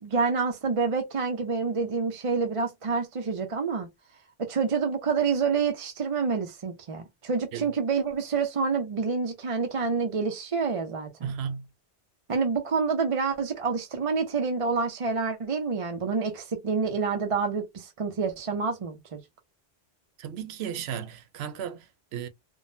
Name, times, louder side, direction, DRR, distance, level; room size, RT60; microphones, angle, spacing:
voice 1, 0.0-3.9 4.4-11.3 12.3-19.2, right 5 dB, 40° right, 0.5 m, -28 dB
voice 2, 11.2-11.7 20.2-22.3, right 8 dB, 90° right, 0.8 m, -35 dB
3.7 x 2.0 x 2.5 m
omnidirectional pair, 1.0 m